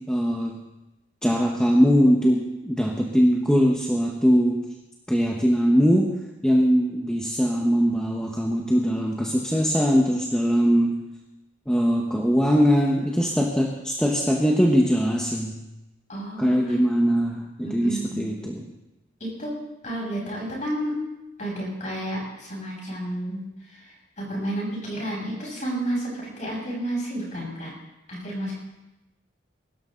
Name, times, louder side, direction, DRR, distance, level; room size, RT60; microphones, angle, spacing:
voice 1, 0.1-0.6 1.2-4.6 5.1-6.1 6.4-11.0 11.7-15.6 16.4-18.6, equal, 5° left, -2 dB, 1.3 m, -21 dB
voice 2, 16.1-16.7 17.6-18.2 19.2-19.5 19.8-20.9 21.4-27.7 28.1-28.5, right 1 dB, 40° left, -4 dB, 7.8 m, -31 dB
22.5 x 13.0 x 4.0 m, 0.97 s
head